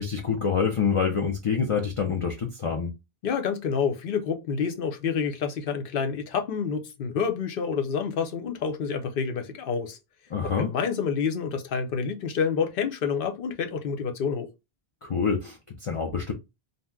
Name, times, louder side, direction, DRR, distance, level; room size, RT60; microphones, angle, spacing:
voice 1, 0.0-2.9 10.3-10.7 15.0-16.3, left 6 dB, 45° left, 0.4 m, -26 dB
voice 2, 3.2-10.0 10.6-14.5, left 6 dB, 65° left, 0.8 m, -28 dB
2.7 x 2.1 x 3.4 m
omnidirectional pair, 1.0 m